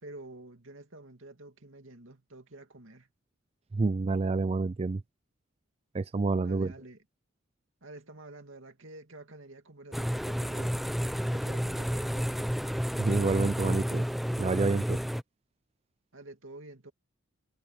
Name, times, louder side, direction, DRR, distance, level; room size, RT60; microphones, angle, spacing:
voice 1, 0.0-3.1 6.4-7.0 7.8-10.8 11.2-12.6 16.1-16.9, right 2 dB, 75° right, 2.5 m, -49 dB
voice 2, 3.7-5.0 5.9-6.7 13.0-14.0 14.4-15.0, right 3 dB, 30° right, 0.4 m, -28 dB
sound 1, 9.9-15.2, equal, ahead, 0.7 m, -31 dB
head